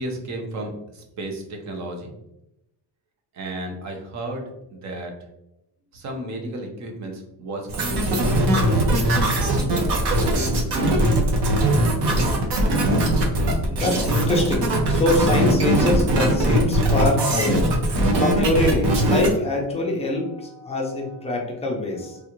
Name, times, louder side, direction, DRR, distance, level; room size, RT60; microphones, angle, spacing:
voice 1, 0.0-2.1 3.3-5.2 5.9-8.7 9.2-10.2, right 1 dB, 40° right, 3 dB, 0.6 m, -33 dB
sound 1, 7.7-19.3, right 1 dB, 65° right, 0.9 m, -20 dB
voice 2, 13.7-22.2, left 2 dB, 15° left, -1 dB, 0.4 m, -24 dB
3.3 x 2.4 x 2.9 m, 0.86 s
cardioid pair, 180°, 42 cm